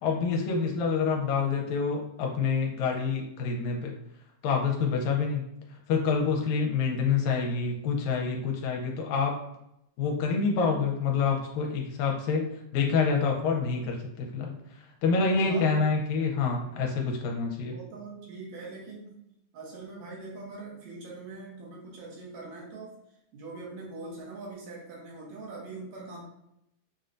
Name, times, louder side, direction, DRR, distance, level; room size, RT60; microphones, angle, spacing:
voice 1, 0.0-3.9 4.4-5.4 5.9-9.3 10.0-12.5 12.7-14.5 15.0-17.7, left 5 dB, 80° left, 0 dB, 2.0 m, -27 dB
voice 2, 15.5-15.9 17.6-19.2 19.5-23.0 23.3-26.2, right 3 dB, 70° right, -3 dB, 2.2 m, -42 dB
5.5 x 2.2 x 2.5 m, 0.80 s
omnidirectional pair, 3.4 m